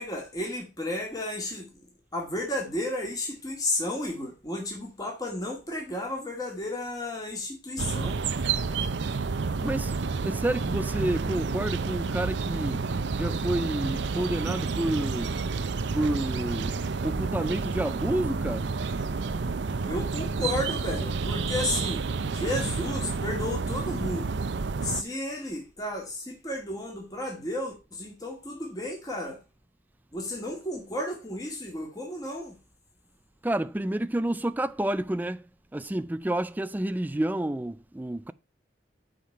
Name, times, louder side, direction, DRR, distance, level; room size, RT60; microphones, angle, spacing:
voice 1, 0.0-1.7 2.1-8.2 19.8-24.4 24.8-29.4 30.1-32.5, left 1 dB, 20° left, 2.0 m, -33 dB
sound 1, 7.8-25.0, right 4 dB, 70° right, 0.6 m, -30 dB
voice 2, 9.6-12.8 13.1-15.3 15.9-16.8 17.0-18.7 33.4-35.4 35.7-38.3, right 1 dB, 10° right, 0.3 m, -29 dB
7.5 x 5.0 x 5.6 m
head